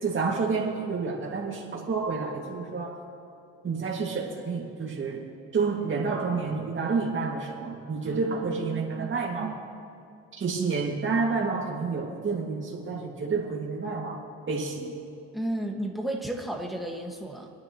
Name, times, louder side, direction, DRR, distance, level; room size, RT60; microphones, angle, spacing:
voice 1, 0.0-3.0 3.6-5.2 5.5-9.6 10.4-14.2 14.5-14.9, right 4 dB, 40° right, -3 dB, 2.2 m, -29 dB
voice 2, 15.3-17.5, right 1 dB, ahead, 0 dB, 1.8 m, -32 dB
28.5 x 10.0 x 3.1 m, 2.5 s
cardioid pair, 90°, 30 cm